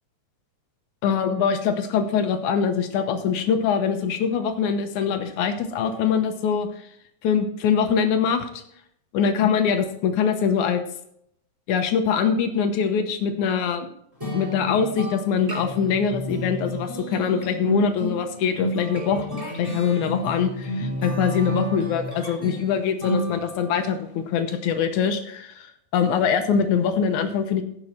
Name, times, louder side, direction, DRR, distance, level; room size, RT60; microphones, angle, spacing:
voice 1, 1.0-6.7 7.2-8.6 9.1-10.8 11.7-13.9 14.3-19.3 19.5-27.6, left 7 dB, 80° left, 7 dB, 2.4 m, -23 dB
sound 1, 14.2-23.9, equal, 5° right, 3.5 m, -31 dB
15.5 x 6.1 x 4.3 m, 0.73 s
omnidirectional pair, 3.4 m